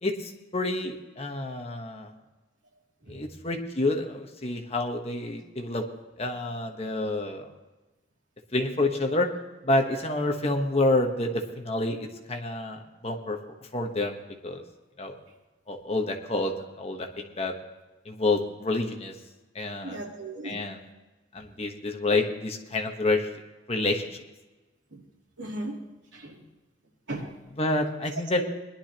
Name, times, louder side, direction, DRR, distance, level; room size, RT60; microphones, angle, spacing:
voice 1, 0.0-2.1 3.1-5.8 6.2-7.5 8.5-9.3 9.6-13.4 13.7-14.1 14.4-14.6 15.0-15.1 15.7-17.5 18.0-19.1 19.5-20.0 20.4-20.8 21.3-23.3 23.7-24.2 27.6-28.4, left 2 dB, 35° left, 3 dB, 1.2 m, -28 dB
voice 2, 19.8-20.6 24.9-25.0 25.4-25.8 26.1-26.4 27.1-27.3 28.3-28.4, right 2 dB, 75° right, -2 dB, 3.1 m, -36 dB
20.5 x 11.5 x 3.0 m, 1.2 s
head